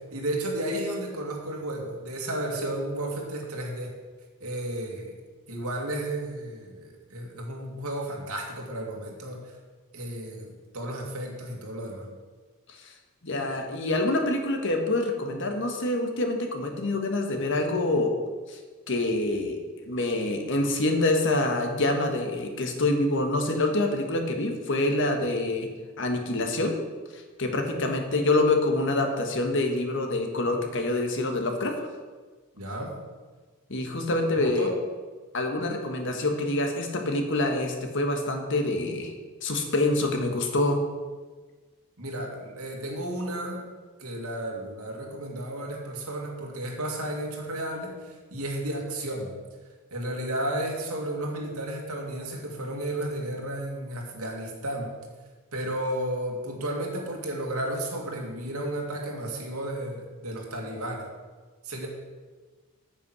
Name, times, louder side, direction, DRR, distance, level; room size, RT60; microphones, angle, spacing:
voice 1, 0.1-3.9 4.4-5.1 5.5-9.5 9.9-12.1 32.6-33.0 34.3-34.7 42.0-43.6 44.0-49.3 49.9-54.9 55.5-61.1 61.6-61.9, right 1 dB, 85° right, 0 dB, 2.4 m, -33 dB
voice 2, 13.2-18.1 18.5-18.6 18.9-25.7 26.0-26.8 27.1-31.9 33.7-34.7 35.3-39.1 39.4-40.8, left 2 dB, 60° left, 4 dB, 1.5 m, -26 dB
8.9 x 8.4 x 6.2 m, 1.4 s
head